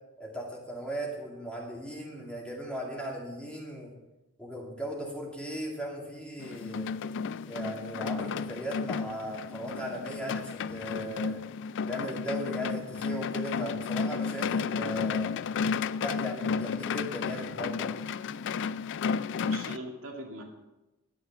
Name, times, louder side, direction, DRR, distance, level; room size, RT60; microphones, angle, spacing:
voice 1, 0.2-3.9 4.4-6.9 7.5-11.4 11.9-15.3 16.0-17.9, equal, 5° left, -2 dB, 2.4 m, -37 dB
sound 1, 6.4-19.8, left 5 dB, 55° left, 0.4 m, -32 dB
voice 2, 19.2-20.4, right 1 dB, 65° right, 1 dB, 2.4 m, -42 dB
11.5 x 10.0 x 5.6 m, 1.0 s
head